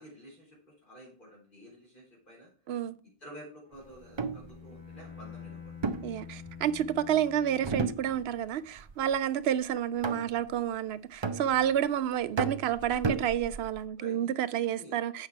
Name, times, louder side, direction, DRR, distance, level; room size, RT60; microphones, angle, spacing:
voice 1, 0.0-2.5 3.2-6.1 14.0-14.3 14.8-15.0, equal, 55° left, 4.1 m, -51 dB
Bowed string instrument, 3.7-8.5, left 7 dB, 35° left, 2.3 m, -48 dB
sound 1, 4.0-4.5 5.8-6.9 7.6-8.5 8.8-9.2 10.0-10.5 11.2-11.9 12.4-13.8, right 4 dB, 35° right, 0.5 m, -33 dB
voice 2, 6.0-15.3, right 10 dB, 85° right, 0.8 m, -30 dB
8.0 x 5.8 x 4.5 m
omnidirectional pair, 1.0 m